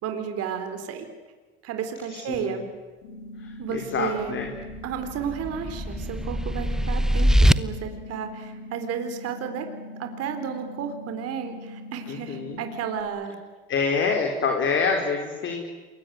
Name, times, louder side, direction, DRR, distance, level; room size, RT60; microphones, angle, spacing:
voice 1, 0.0-1.1 1.6-2.6 3.6-4.4 4.8-9.7 10.0-13.4, right 7 dB, 55° right, 6 dB, 4.0 m, -32 dB
voice 2, 2.1-2.6 3.4-4.5 12.1-12.6 13.7-15.6, left 5 dB, 40° left, 3 dB, 4.3 m, -26 dB
sound 1, 3.0-13.0, left 1 dB, 80° left, 5.6 m, -41 dB
sound 2, 4.7-7.5, equal, ahead, 0.9 m, -22 dB
27.5 x 22.0 x 9.5 m, 1.3 s
supercardioid pair, 95°, 29 cm